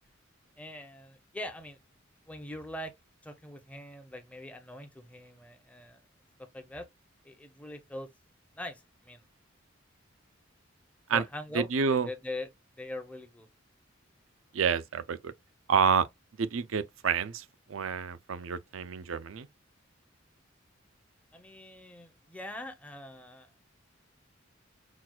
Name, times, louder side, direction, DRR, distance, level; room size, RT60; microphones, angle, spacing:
voice 1, 0.6-1.8 2.3-2.9 3.2-6.0 6.5-6.9 7.2-8.1 8.6-9.2 11.1-12.5 12.8-13.5 21.3-23.5, left 1 dB, 5° left, 0.7 m, -42 dB
voice 2, 11.5-12.1 14.5-15.3 15.7-16.1 16.4-19.5, right 6 dB, 85° right, 0.5 m, -28 dB
6.0 x 2.3 x 2.3 m
head